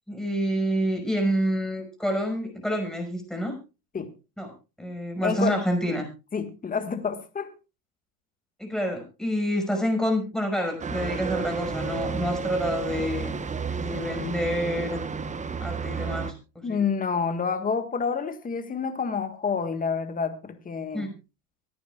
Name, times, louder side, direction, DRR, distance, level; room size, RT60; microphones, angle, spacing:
voice 1, 0.1-3.5 4.4-4.5 4.8-6.1 8.6-13.3 13.7-15.0 15.6-16.8 20.9-21.1, equal, ahead, 3 dB, 5.7 m, -28 dB
voice 2, 5.2-6.0 6.3-7.5 16.6-21.1, left 5 dB, 15° left, 8 dB, 1.7 m, -28 dB
sound 1, 10.8-16.3, right 5 dB, 15° right, 1.0 m, -31 dB
24.5 x 9.4 x 2.4 m, 0.30 s
supercardioid pair, 110°, 48 cm